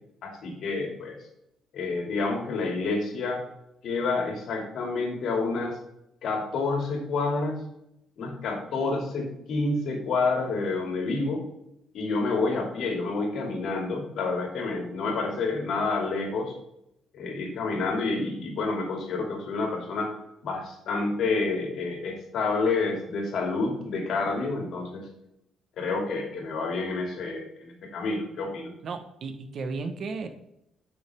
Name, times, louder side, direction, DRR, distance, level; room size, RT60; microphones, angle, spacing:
voice 1, 0.2-1.1 1.7-3.4 3.8-5.8 6.2-7.6 8.2-11.4 11.9-16.5 17.1-20.1 20.4-25.1 25.8-28.7, left 3 dB, 65° left, 2 dB, 2.5 m, -29 dB
voice 2, 28.8-30.3, right 4 dB, 55° right, 7 dB, 1.2 m, -34 dB
9.0 x 6.3 x 3.5 m, 0.82 s
cardioid pair, 100°, 0 cm